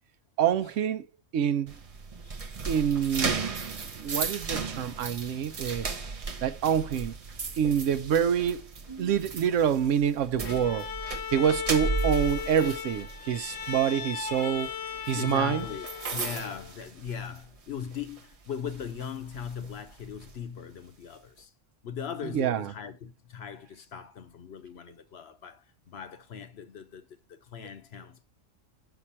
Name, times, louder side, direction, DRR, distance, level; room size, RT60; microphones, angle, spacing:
voice 1, 0.4-1.1 1.3-1.7 2.7-3.5 4.0-5.9 6.4-7.1 7.6-8.6 9.0-10.9 11.3-14.7 15.1-15.7 22.3-22.7, right 8 dB, 75° right, 0.9 m, -26 dB
sound 1, 1.7-17.6 17.9-18.2 18.7-20.3, right 4 dB, 35° right, 0.6 m, -36 dB
voice 2, 2.2-2.6 15.1-21.5 21.8-28.2, left 7 dB, 60° left, 0.9 m, -39 dB
Bowed string instrument, 10.4-16.7, left 8 dB, 85° left, 1.4 m, -37 dB
6.1 x 6.0 x 4.2 m
omnidirectional pair, 1.3 m